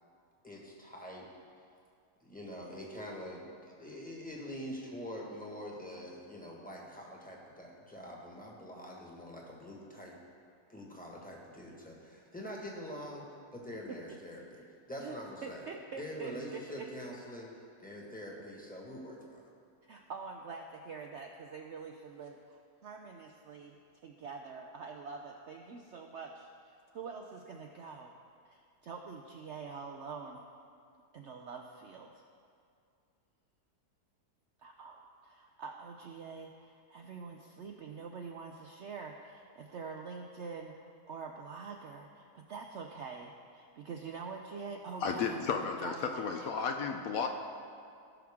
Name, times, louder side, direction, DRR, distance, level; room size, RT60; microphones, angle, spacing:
voice 1, 0.4-1.3 2.2-10.1 10.7-15.6 16.0-17.5 17.8-19.4, equal, 5° left, -2 dB, 1.4 m, -45 dB
voice 2, 13.9-14.5 15.0-16.9 19.8-28.2 28.5-30.5 31.1-32.2 34.6-46.8, right 5 dB, 65° right, 2 dB, 0.7 m, -45 dB
voice 3, 45.0-47.3, left 5 dB, 65° left, 4 dB, 1.0 m, -33 dB
17.0 x 6.0 x 3.6 m, 2.4 s
omnidirectional pair, 1.7 m